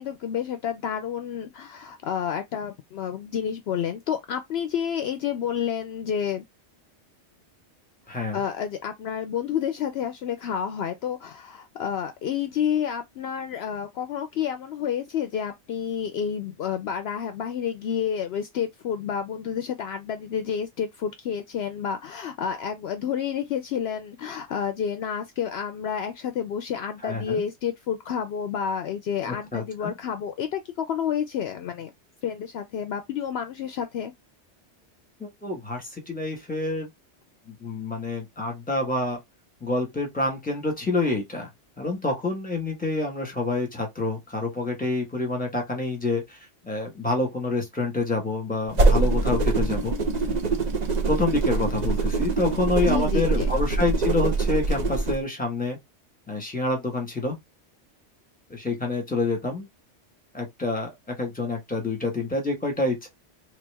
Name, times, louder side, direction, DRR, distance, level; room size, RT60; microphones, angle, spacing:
voice 1, 0.0-6.4 8.3-31.9 32.2-34.1 52.8-53.5, left 8 dB, 70° left, 0.8 m, -29 dB
voice 2, 8.1-8.4 27.0-27.4 29.3-29.9 35.2-36.9 37.5-39.2 39.6-41.5 41.8-49.9 51.1-55.8 56.3-57.3 58.5-59.6 60.3-63.1, left 2 dB, 10° left, 1.4 m, -27 dB
sound 1, 48.7-55.2, right 3 dB, 45° right, 0.7 m, -24 dB
3.3 x 3.0 x 3.4 m
omnidirectional pair, 1.2 m